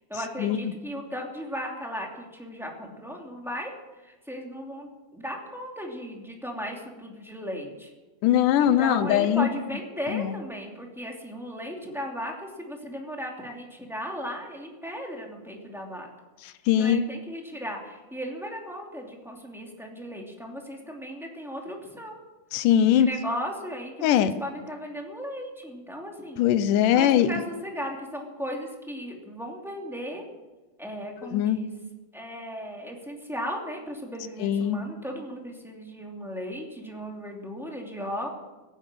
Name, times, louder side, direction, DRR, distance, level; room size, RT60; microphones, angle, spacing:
voice 1, 0.1-3.7 4.0-7.9 8.6-16.1 16.8-22.2 22.9-26.4 26.9-30.2 30.8-31.7 32.1-38.3, equal, ahead, 0 dB, 2.3 m, -36 dB
voice 2, 8.2-9.5 10.1-10.3 16.7-17.0 22.5-23.1 24.0-24.3 26.4-27.3 31.3-31.6 34.4-34.8, left 10 dB, 90° left, 12 dB, 2.3 m, -21 dB
17.0 x 9.9 x 7.5 m, 1.2 s
omnidirectional pair, 3.6 m